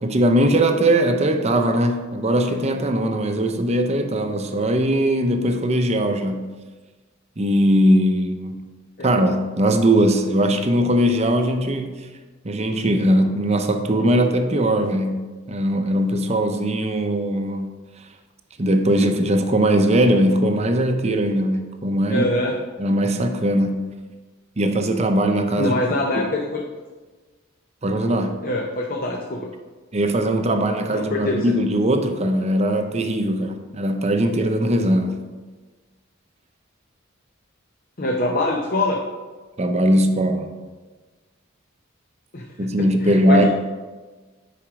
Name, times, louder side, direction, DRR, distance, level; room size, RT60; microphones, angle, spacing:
voice 1, 0.0-6.5 7.4-8.6 9.0-12.0 12.4-15.2 15.5-17.7 18.6-22.3 22.8-23.9 24.6-25.8 26.1-26.3 27.8-28.4 29.9-35.3 39.6-40.5 42.6-43.4, right 1 dB, 35° right, 6 dB, 0.7 m, -20 dB
voice 2, 22.1-22.5 25.6-26.6 28.4-29.5 30.9-31.5 38.0-39.0 42.3-42.4 43.0-43.4, left 2 dB, 45° left, 0 dB, 0.7 m, -24 dB
8.9 x 5.1 x 4.9 m, 1.3 s
head